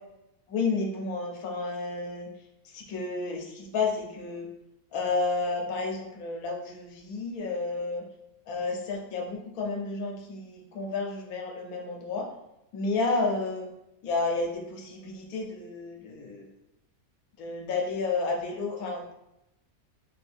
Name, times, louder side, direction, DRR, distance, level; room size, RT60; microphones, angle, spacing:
voice 1, 0.5-2.3 2.6-4.5 4.9-8.1 8.5-12.3 12.7-13.7 14.0-16.5 17.4-19.1, left 3 dB, 75° left, 1 dB, 1.1 m, -31 dB
2.9 x 2.6 x 3.3 m, 0.87 s
omnidirectional pair, 1.5 m